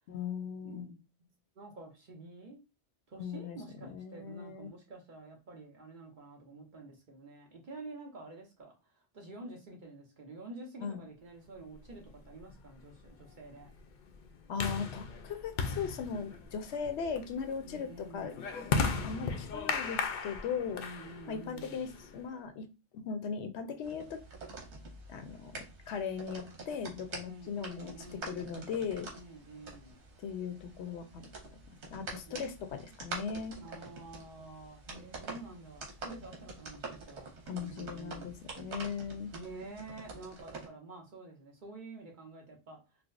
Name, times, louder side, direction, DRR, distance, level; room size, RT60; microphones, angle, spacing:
voice 1, 0.1-0.8 3.2-4.7 10.8-11.0 14.5-20.8 21.3-22.7 22.9-24.2 25.1-27.9 28.2-29.1 30.2-31.3 31.7-33.6 37.5-39.3, left 6 dB, 85° left, 0.9 m, -38 dB
voice 2, 0.6-1.3 1.6-2.6 3.1-13.7 17.6-18.5 20.7-21.9 27.2-28.5 29.1-30.0 32.3-32.5 33.6-38.3 39.3-42.8, right 2 dB, 50° right, 1.0 m, -49 dB
sound 1, 11.9-22.3, left 5 dB, 55° left, 0.5 m, -37 dB
sound 2, 23.8-40.7, right 3 dB, 85° right, 1.2 m, -47 dB
4.4 x 2.0 x 2.4 m
omnidirectional pair, 1.1 m